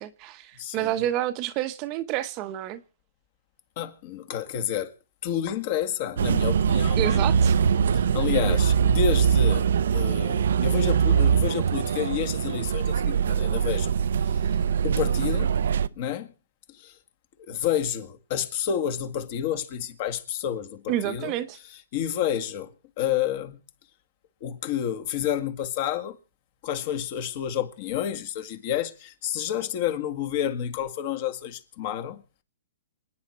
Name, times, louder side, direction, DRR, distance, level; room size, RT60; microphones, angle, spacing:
voice 1, 0.0-2.8 7.0-7.6 20.9-21.6, right 13 dB, 30° right, 1.0 m, -29 dB
voice 2, 0.6-0.9 3.8-4.9 5.2-7.2 7.9-14.0 14.2-14.4 14.8-15.5 16.0-16.3 16.7-17.0 17.4-21.3 21.9-23.6 24.4-26.2 26.6-32.2, left 9 dB, 40° left, 2.0 m, -30 dB
sound 1, 6.2-15.9, right 7 dB, 70° right, 0.6 m, -22 dB
27.0 x 9.8 x 4.5 m
hypercardioid pair, 150°, 0 cm